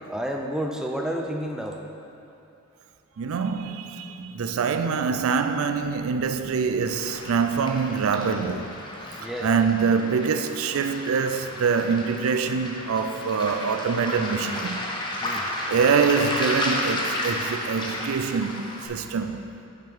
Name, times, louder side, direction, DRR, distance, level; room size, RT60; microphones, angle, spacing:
voice 1, 0.1-1.8 9.2-9.7 15.2-15.5, equal, 5° right, 0.4 m, -30 dB
voice 2, 3.2-8.7 9.4-14.8 15.7-19.4, right 5 dB, 70° right, 0.4 m, -25 dB
Waves surf, 6.9-18.9, left 1 dB, 20° left, 0.7 m, -32 dB
8.7 x 5.8 x 3.5 m
head